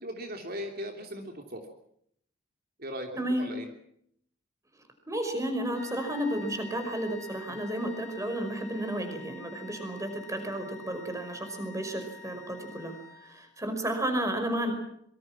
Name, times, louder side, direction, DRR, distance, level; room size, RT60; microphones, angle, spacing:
voice 1, 0.0-1.7 2.8-3.7, equal, 55° right, 3 dB, 3.2 m, -38 dB
voice 2, 5.1-14.7, right 1 dB, 15° right, 6 dB, 5.4 m, -32 dB
sound 1, 5.7-13.6, left 4 dB, ahead, 7.5 m, -48 dB
26.0 x 24.0 x 6.2 m, 0.70 s
head